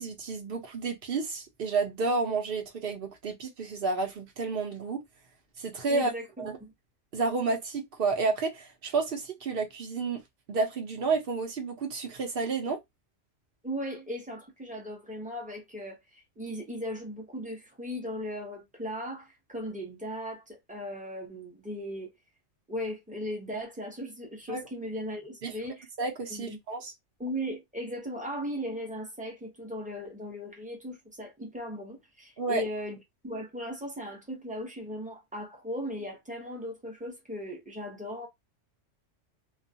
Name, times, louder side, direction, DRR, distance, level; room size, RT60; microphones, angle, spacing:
voice 1, 0.0-5.0 5.6-6.1 6.4-6.6 7.1-10.2 10.5-12.8 24.5-24.6 25.4-25.5 26.0-26.9 32.4-32.6, right 4 dB, 55° right, 0.9 m, -30 dB
voice 2, 5.9-6.7 13.6-22.1 22.7-25.9 26.3-26.6 27.2-38.3, equal, 10° right, 0.7 m, -37 dB
2.4 x 2.2 x 2.6 m
omnidirectional pair, 1.2 m